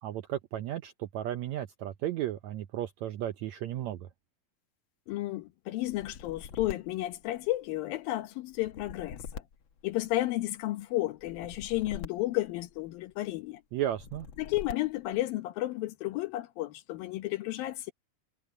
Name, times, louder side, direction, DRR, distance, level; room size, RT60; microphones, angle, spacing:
voice 1, 0.0-4.1 13.7-14.3, right 12 dB, 80° right, 1.6 m, -34 dB
voice 2, 5.1-9.4 9.8-13.6 14.4-17.9, left 16 dB, 85° left, 2.9 m, -32 dB
sound 1, 5.9-7.9 8.5-10.5 11.2-13.1 13.9-15.2, left 6 dB, 50° left, 1.5 m, -45 dB
omnidirectional pair, 4.0 m